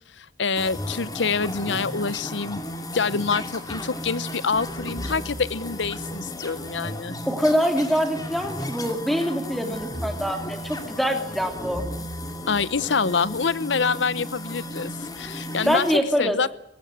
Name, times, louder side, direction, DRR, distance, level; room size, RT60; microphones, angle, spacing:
voice 1, 0.2-2.6 2.9-7.2 12.5-15.9 16.2-16.5, left 5 dB, 75° left, 18 dB, 0.9 m, -26 dB
sound 1, 0.5-16.0, left 1 dB, 20° left, 2.6 m, -34 dB
voice 2, 7.3-11.8 15.6-16.4, equal, ahead, 5 dB, 2.9 m, -24 dB
22.0 x 18.0 x 9.9 m, 0.83 s
head